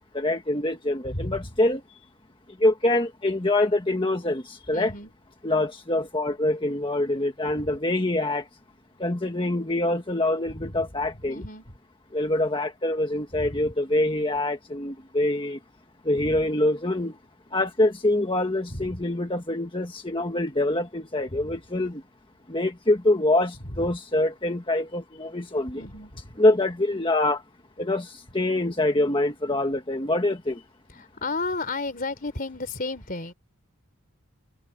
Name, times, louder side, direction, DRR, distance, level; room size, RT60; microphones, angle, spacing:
voice 1, 0.1-2.0 2.6-4.9 5.4-8.5 9.0-11.4 12.1-15.6 16.0-17.2 17.5-22.0 22.5-25.8 26.4-27.4 27.8-30.6, left 1 dB, 25° left, 1.4 m, -25 dB
voice 2, 1.1-1.4 4.7-5.1 10.6-10.7 11.3-11.6 13.4-13.5 16.2-16.3 18.7-19.0 25.8-26.2 31.0-33.3, left 3 dB, 40° left, 3.5 m, -32 dB
head